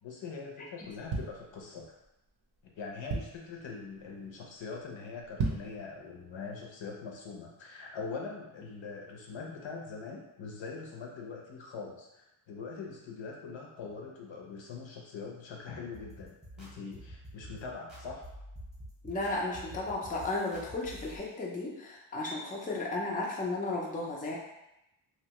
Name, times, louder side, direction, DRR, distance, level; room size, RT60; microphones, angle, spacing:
voice 1, 0.0-2.0 2.8-18.3, left 4 dB, 65° left, 0 dB, 0.7 m, -42 dB
sound 1, 0.8-2.1 2.6-2.7 2.8-3.6 4.0-4.3 4.6-4.7 5.2-5.8 6.3-6.4, right 3 dB, 60° right, 0.6 m, -35 dB
sound 2, 15.9-21.2, equal, ahead, 0.8 m, -48 dB
voice 2, 19.0-24.4, left 2 dB, 20° left, -3 dB, 0.4 m, -34 dB
2.9 x 2.2 x 2.9 m, 0.89 s
wide cardioid pair, 110°, 49 cm